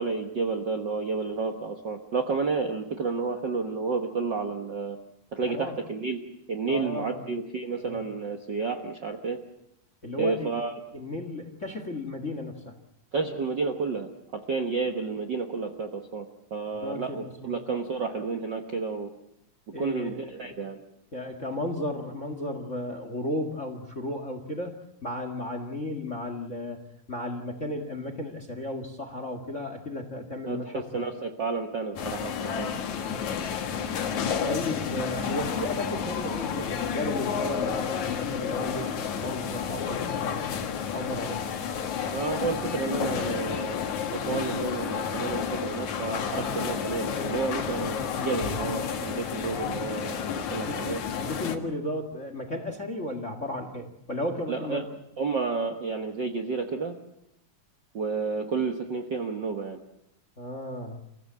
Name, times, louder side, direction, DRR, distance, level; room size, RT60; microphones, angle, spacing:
voice 1, 0.0-5.0 5.3-6.2 6.5-9.4 10.1-10.7 13.1-19.1 19.8-20.8 30.5-32.7 42.1-43.9 44.1-51.0 54.5-54.9 55.2-57.0 57.9-59.8, right 4 dB, 50° right, 4 dB, 1.4 m, -31 dB
voice 2, 5.5-5.8 6.7-7.2 7.9-8.0 10.0-10.5 10.9-12.7 16.8-17.5 19.7-20.5 21.1-24.7 25.0-31.0 33.0-33.6 34.4-40.4 40.9-41.5 50.5-50.9 51.2-54.8 60.4-61.0, left 1 dB, 30° left, 8 dB, 1.6 m, -34 dB
sound 1, 32.0-51.6, left 7 dB, 65° left, 2.9 m, -31 dB
29.5 x 15.5 x 7.4 m, 0.83 s
omnidirectional pair, 3.7 m